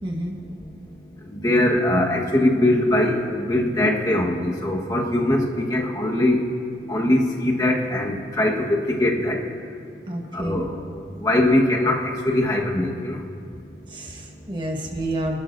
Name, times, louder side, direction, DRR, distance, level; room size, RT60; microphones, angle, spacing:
voice 1, 0.0-0.3 10.1-10.7 13.9-15.4, right 1 dB, 25° right, 1 dB, 1.5 m, -29 dB
voice 2, 1.3-6.4 6.9-9.4 10.3-10.8 11.2-13.2, left 1 dB, 20° left, -1 dB, 1.5 m, -21 dB
26.5 x 12.0 x 2.7 m, 2.3 s
head